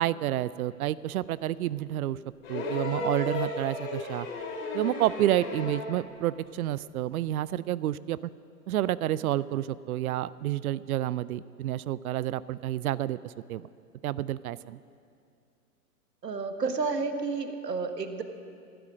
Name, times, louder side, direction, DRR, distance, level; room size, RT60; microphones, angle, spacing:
voice 1, 0.0-2.2 2.5-4.3 4.7-8.2 8.7-13.7 14.0-14.8, right 13 dB, 65° right, 19 dB, 0.5 m, -29 dB
sound 1, 2.4-6.0 7.3-7.4, left 3 dB, 55° left, 3.3 m, -34 dB
voice 2, 16.2-18.2, right 4 dB, 85° right, 7 dB, 1.4 m, -31 dB
15.5 x 11.0 x 6.2 m, 2.4 s
hypercardioid pair, 115°, 47 cm